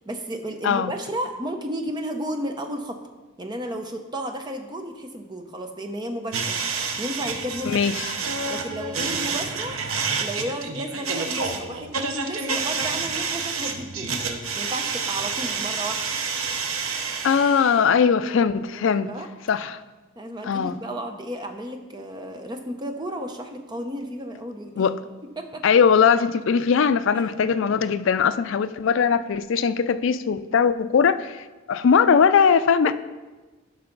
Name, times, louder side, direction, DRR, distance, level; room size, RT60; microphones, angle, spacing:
voice 1, 0.1-3.0 3.4-6.6 7.0-7.8 8.5-9.8 10.2-14.1 14.6-16.0 18.7-19.3 20.2-24.8 25.4-25.6 27.1-27.3, right 1 dB, 20° right, 0.6 m, -33 dB
sound 1, 6.3-17.9, right 4 dB, 75° right, 0.8 m, -29 dB
voice 2, 7.6-8.1 17.2-19.1 19.5-19.8 20.4-20.8 24.8-25.0 25.6-32.9, left 6 dB, 60° left, 0.3 m, -20 dB
11.5 x 5.7 x 3.9 m
head